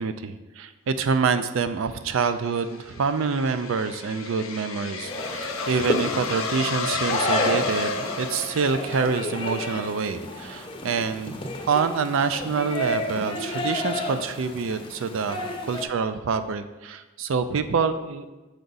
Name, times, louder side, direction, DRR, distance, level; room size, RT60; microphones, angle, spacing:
voice 1, 0.0-11.4 11.7-18.3, right 5 dB, 65° right, 10 dB, 0.4 m, -26 dB
sound 1, 2.2-9.3, left 3 dB, 70° left, 0.7 m, -31 dB
sound 2, 5.0-15.8, left 1 dB, 25° left, 0.6 m, -32 dB
6.5 x 4.6 x 4.0 m, 1.1 s
head